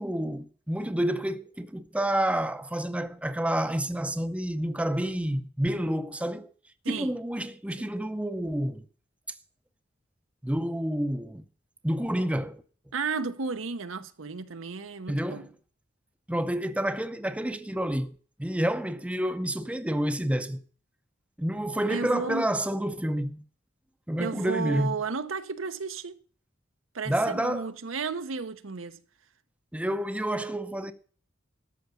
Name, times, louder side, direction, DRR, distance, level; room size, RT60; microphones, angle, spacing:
voice 1, 0.0-6.5 6.9-8.9 10.4-11.4 11.8-12.6 15.1-15.5 16.3-20.6 21.4-23.4 24.1-25.0 27.1-27.6 29.7-30.9, right 1 dB, 5° right, 0.6 m, -29 dB
voice 2, 6.8-7.2 7.8-7.9 12.9-15.5 21.9-22.5 24.2-26.2 26.9-29.0, right 4 dB, 80° right, 0.9 m, -33 dB
13.0 x 5.8 x 6.9 m
head